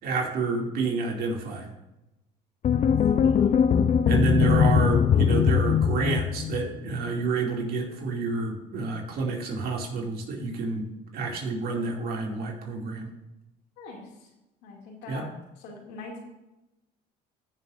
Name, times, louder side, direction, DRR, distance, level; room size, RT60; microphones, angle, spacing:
voice 1, 0.0-1.7 4.1-13.1 15.1-15.2, right 4 dB, 65° right, 0 dB, 2.5 m, -29 dB
sound 1, 2.6-6.9, left 7 dB, 45° left, 0.6 m, -21 dB
voice 2, 2.7-3.5 13.8-14.0 14.6-15.3 15.6-16.3, left 2 dB, 85° left, -1 dB, 2.5 m, -43 dB
15.0 x 6.6 x 2.6 m, 0.95 s
supercardioid pair, 85°, 17 cm